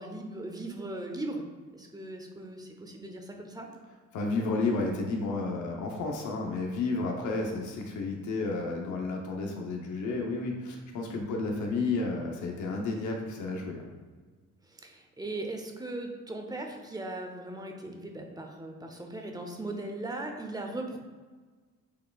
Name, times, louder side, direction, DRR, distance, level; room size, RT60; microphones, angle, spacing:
voice 1, 0.0-1.4 1.7-3.7 14.6-21.0, right 2 dB, 15° right, 3 dB, 0.7 m, -38 dB
voice 2, 4.1-13.8, left 3 dB, 75° left, 1 dB, 0.8 m, -31 dB
6.7 x 3.3 x 2.4 m, 1.4 s
cardioid pair, 90°, 30 cm